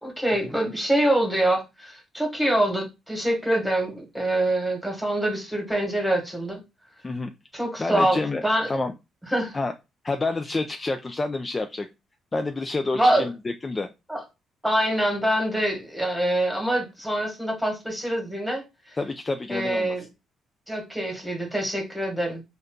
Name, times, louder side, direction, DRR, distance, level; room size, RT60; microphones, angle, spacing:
voice 1, 0.0-6.6 7.5-8.7 9.3-9.5 12.9-13.3 14.1-14.2 14.6-19.0 19.5-20.0 20.7-22.4, right 1 dB, ahead, 1.3 m, -25 dB
voice 2, 7.8-8.4 8.7-8.9 9.5-9.7 10.0-11.9 12.3-13.9 19.0-20.0, left 3 dB, 25° left, 0.3 m, -28 dB
2.6 x 2.3 x 3.6 m
cardioid pair, 90°, 0 cm